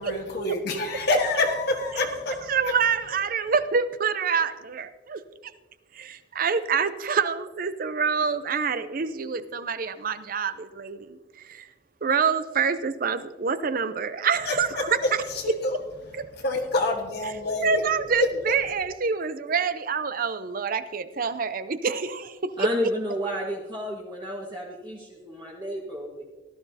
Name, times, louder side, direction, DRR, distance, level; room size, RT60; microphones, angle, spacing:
voice 1, 0.0-2.8 14.4-14.9 15.3-15.8 16.4-17.8 18.2-18.5, left 2 dB, 55° left, 0 dB, 1.4 m, -27 dB
voice 2, 2.5-5.2 5.9-11.2 11.4-11.7 12.0-15.5 16.1-16.3 17.2-17.3 17.6-22.7, right 5 dB, 45° right, 12 dB, 0.5 m, -26 dB
voice 3, 22.6-26.2, equal, 25° right, -3 dB, 1.4 m, -31 dB
16.5 x 12.0 x 2.7 m, 1.2 s
head